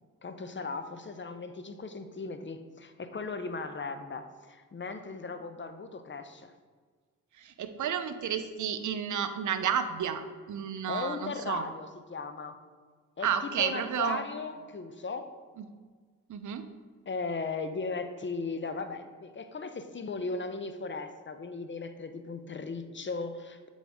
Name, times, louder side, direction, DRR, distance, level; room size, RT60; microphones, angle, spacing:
voice 1, 0.2-6.5 10.9-12.6 13.2-15.3 17.1-23.7, left 4 dB, 30° left, 9 dB, 0.7 m, -37 dB
voice 2, 7.4-11.6 13.2-14.2 16.3-16.7, right 8 dB, 55° right, 9 dB, 0.6 m, -31 dB
7.5 x 4.1 x 3.5 m, 1.5 s
supercardioid pair, 45°, 36 cm